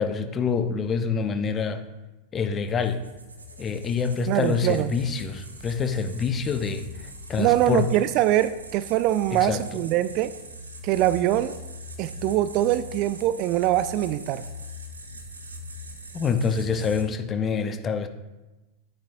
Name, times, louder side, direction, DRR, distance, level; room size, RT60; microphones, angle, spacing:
voice 1, 0.0-1.8 2.3-3.0 3.6-7.8 9.3-9.6 16.1-18.1, left 5 dB, 25° left, 8 dB, 0.9 m, -26 dB
sound 1, 2.7-17.0, equal, 80° right, 1.3 m, -41 dB
voice 2, 4.3-4.9 7.4-10.3 10.8-11.5 12.0-14.4, right 13 dB, 40° right, 14 dB, 0.4 m, -23 dB
12.0 x 10.0 x 2.7 m, 1.1 s
figure-of-eight pair, 90°, 0 cm